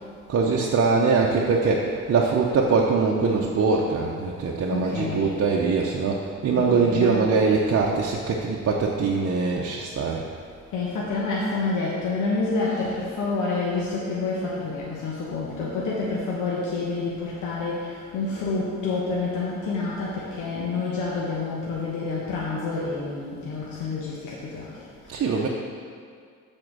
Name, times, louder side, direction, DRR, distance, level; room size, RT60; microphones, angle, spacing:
voice 1, 0.3-10.2 25.1-25.5, right 4 dB, 50° right, -2 dB, 0.8 m, -22 dB
voice 2, 4.7-5.3 6.6-7.3 10.7-24.7 25.2-25.4, left 3 dB, 85° left, -5 dB, 1.3 m, -28 dB
7.6 x 4.4 x 6.2 m, 2.1 s
cardioid pair, 90°, 30 cm